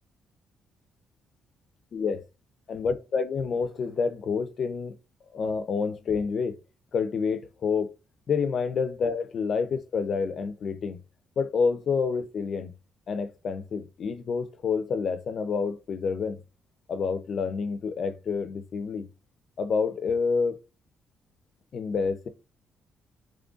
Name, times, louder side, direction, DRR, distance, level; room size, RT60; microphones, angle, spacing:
voice 1, 1.9-2.2 2.7-4.9 5.3-6.6 6.9-7.9 8.3-11.0 11.4-12.7 13.1-16.4 16.9-19.1 19.6-20.6 21.7-22.3, left 5 dB, 55° left, 0.5 m, -28 dB
3.8 x 3.1 x 2.4 m
cardioid pair, 90°, 0 cm